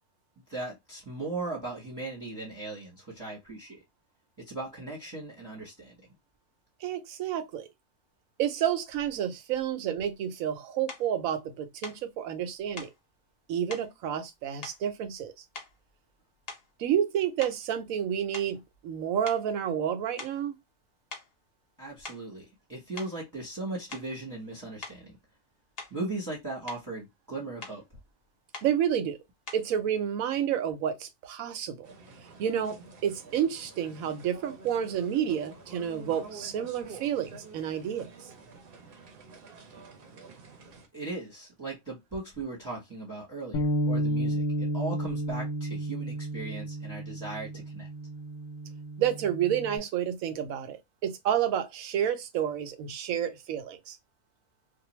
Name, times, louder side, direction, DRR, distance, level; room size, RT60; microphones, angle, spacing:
voice 1, 0.5-3.8 4.4-6.0 21.8-25.2 25.9-27.8 40.9-47.9, right 2 dB, 15° right, 0.9 m, -38 dB
voice 2, 6.8-7.7 8.4-12.9 13.5-15.4 16.8-20.5 28.6-29.2 29.5-31.9 32.4-38.3 49.0-54.0, right 9 dB, 90° right, 1.0 m, -30 dB
sound 1, 10.9-11.1 11.8-12.0 12.8-13.0 13.7-13.9 14.6-15.2 15.5-15.9 16.4-16.8 17.4-19.0 19.2-19.5 20.2-20.4 21.1-21.3 21.9-22.3 23.0-23.2 23.9-24.2 24.8-25.0 25.8-26.1 26.4-26.9 27.6-27.8 28.5-28.8 29.5-29.7, left 3 dB, 50° left, 0.9 m, -44 dB
sound 2, 31.8-40.9, right 4 dB, 55° right, 0.8 m, -49 dB
Bass guitar, 43.5-49.8, right 1 dB, 80° left, 1.0 m, -32 dB
2.5 x 2.2 x 3.0 m
omnidirectional pair, 1.4 m